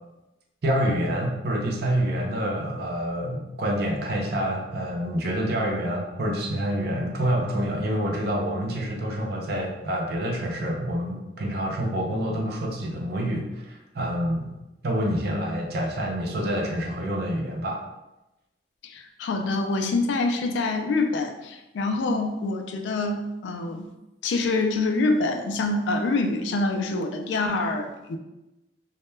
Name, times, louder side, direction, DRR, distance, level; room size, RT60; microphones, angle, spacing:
voice 1, 0.6-14.5 14.8-17.8, equal, 60° right, 0 dB, 0.5 m, -27 dB
voice 2, 18.8-23.9 24.2-28.2, left 2 dB, 70° left, 6 dB, 0.3 m, -26 dB
2.1 x 2.1 x 3.1 m, 0.97 s
head